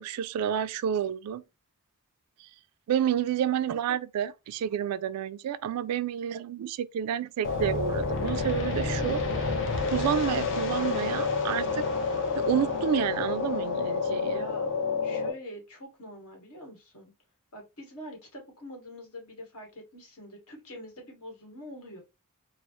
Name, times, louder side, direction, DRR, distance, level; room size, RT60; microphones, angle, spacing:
voice 1, 0.0-1.4 2.9-9.5 9.9-11.8 12.4-14.4, right 9 dB, 85° right, 0.3 m, -30 dB
sound 1, 7.4-15.3, left 4 dB, 55° left, 0.6 m, -29 dB
voice 2, 14.3-14.7 15.0-17.1 17.5-22.0, equal, 70° left, 1.4 m, -45 dB
4.1 x 2.0 x 2.9 m
head